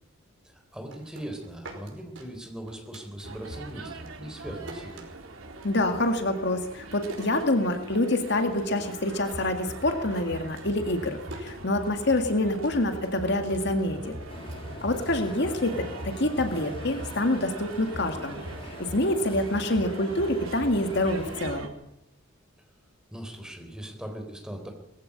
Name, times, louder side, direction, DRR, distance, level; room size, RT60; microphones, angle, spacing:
voice 1, 0.4-5.1 23.1-24.7, right 1 dB, 5° right, 4 dB, 3.8 m, -40 dB
sound 1, 0.7-3.6 3.9-8.1 8.4-9.0 9.2-15.5, right 1 dB, 65° right, 5.2 m, -48 dB
sound 2, 3.2-21.7, right 2 dB, 90° right, 3.2 m, -41 dB
voice 2, 5.6-14.1 14.8-18.4 18.8-21.7, left 1 dB, 60° left, 6 dB, 2.1 m, -26 dB
sound 3, 14.3-21.5, left 1 dB, 25° left, 2.6 m, -44 dB
20.5 x 15.5 x 8.7 m, 0.83 s
head